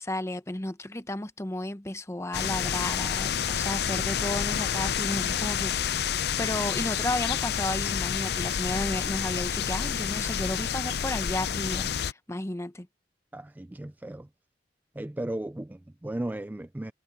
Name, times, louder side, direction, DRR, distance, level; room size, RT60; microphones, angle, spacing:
voice 1, 0.0-6.1 6.4-12.9, left 1 dB, 15° left, 0.8 m, -33 dB
sound 1, 2.3-12.1, left 8 dB, 65° left, 0.5 m, -29 dB
voice 2, 13.3-14.3 14.9-16.9, right 1 dB, 10° right, 0.3 m, -35 dB
head